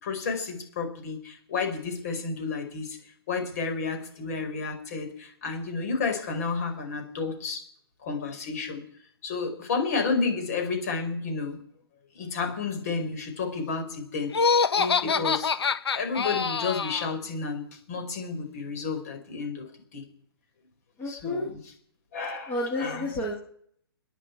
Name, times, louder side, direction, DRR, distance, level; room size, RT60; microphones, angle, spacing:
voice 1, 0.0-3.0 3.3-7.6 8.0-8.8 9.2-11.6 12.2-14.3 15.0-15.5 15.9-19.7 19.9-20.1 21.1-21.6 22.1-23.2, left 4 dB, 40° left, 5 dB, 5.2 m, -31 dB
Laughter, 14.3-17.1, left 5 dB, 85° left, 1.3 m, -25 dB
voice 2, 14.7-15.3 21.0-21.5 22.5-23.4, left 1 dB, 10° left, -4 dB, 3.1 m, -31 dB
28.5 x 10.5 x 4.7 m, 0.62 s
hypercardioid pair, 170°, 13 cm